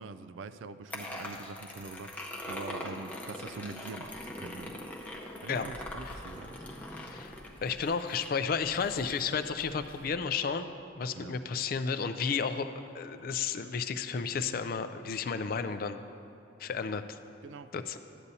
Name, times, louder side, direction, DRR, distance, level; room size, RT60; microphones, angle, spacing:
voice 1, 0.0-4.8 5.4-6.5 11.1-11.3 17.4-17.7, right 4 dB, 85° right, 13 dB, 0.3 m, -44 dB
sound 1, 0.9-10.1, left 1 dB, 10° left, 0.7 m, -43 dB
voice 2, 6.9-7.4 7.6-16.0 16.6-17.2 17.7-18.0, left 5 dB, 50° left, 10 dB, 0.4 m, -32 dB
13.0 x 8.4 x 2.7 m, 2.9 s
head